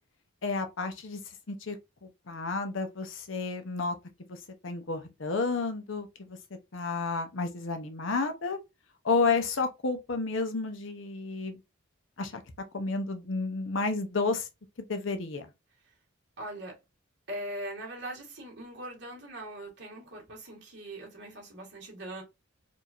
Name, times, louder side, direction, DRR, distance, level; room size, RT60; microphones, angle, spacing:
voice 1, 0.4-1.2 1.5-3.9 4.3-6.4 6.7-8.6 9.0-11.6 12.2-12.4 12.7-14.5 14.8-15.5, left 4 dB, 70° left, 0.8 m, -31 dB
voice 2, 16.4-16.8 17.3-22.2, right 1 dB, 55° right, 2.0 m, -41 dB
4.5 x 2.7 x 2.5 m
head